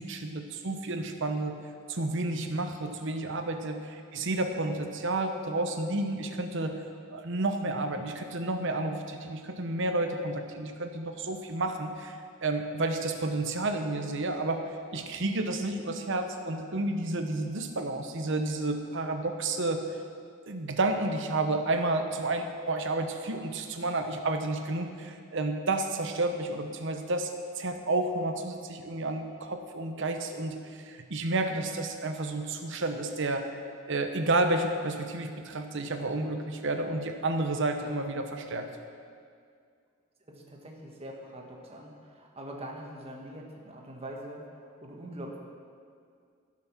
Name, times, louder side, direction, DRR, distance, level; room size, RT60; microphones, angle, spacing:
voice 1, 0.0-1.6 1.9-6.8 7.1-14.6 14.9-19.8 20.5-33.4 33.9-38.7, right 2 dB, 65° right, 6 dB, 1.0 m, -31 dB
voice 2, 40.3-45.4, right 1 dB, 30° right, 0 dB, 1.6 m, -43 dB
15.5 x 6.2 x 6.0 m, 2.2 s
head